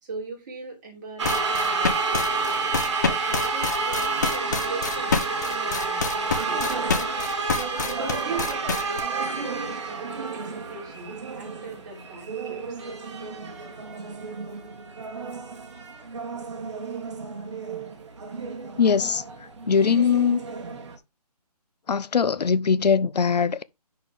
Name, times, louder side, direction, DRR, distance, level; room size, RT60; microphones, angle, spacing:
voice 1, 0.0-2.6 3.0-6.9 8.0-12.8, right 4 dB, 30° right, 3.2 m, -39 dB
sound 1, 1.2-9.0, left 5 dB, 25° left, 0.8 m, -27 dB
sound 2, 1.2-21.0, right 4 dB, 45° right, 1.7 m, -30 dB
voice 2, 18.8-19.2 19.7-20.4 21.9-23.6, left 6 dB, 85° left, 0.7 m, -21 dB
10.5 x 4.5 x 3.5 m
hypercardioid pair, 170°, 20 cm